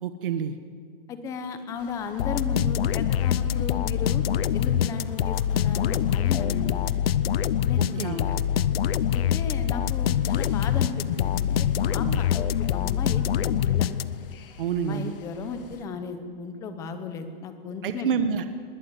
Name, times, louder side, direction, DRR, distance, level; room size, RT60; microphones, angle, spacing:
voice 1, 0.0-0.6 8.0-8.2 12.0-12.2 14.6-15.1 17.8-18.5, right 7 dB, 65° right, 9 dB, 1.4 m, -28 dB
voice 2, 1.1-4.2 4.5-6.8 7.6-8.3 9.1-11.3 11.6-13.9 14.8-18.1, left 5 dB, 10° left, 9 dB, 0.8 m, -35 dB
sound 1, 1.3-11.9, left 9 dB, 35° left, 0.6 m, -41 dB
sound 2, 1.8-15.9, left 6 dB, 65° left, 1.9 m, -51 dB
sound 3, 2.2-14.4, left 10 dB, 80° left, 0.7 m, -25 dB
21.0 x 17.0 x 8.0 m, 2.2 s
supercardioid pair, 180°, 29 cm